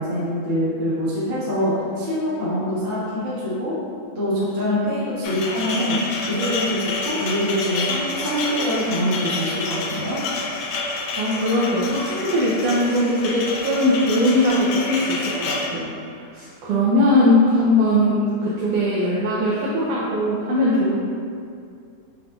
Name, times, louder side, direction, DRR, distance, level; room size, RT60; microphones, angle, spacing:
voice 1, 0.0-3.7 4.1-6.0 6.2-6.8 7.0-10.2, equal, 65° right, -11 dB, 0.6 m, -24 dB
sound 1, 5.2-15.7, left 3 dB, 85° left, 1.3 m, -28 dB
voice 2, 11.2-15.9 16.3-21.0, left 1 dB, 85° right, -7 dB, 1.3 m, -20 dB
6.4 x 2.5 x 2.3 m, 2.4 s
omnidirectional pair, 3.3 m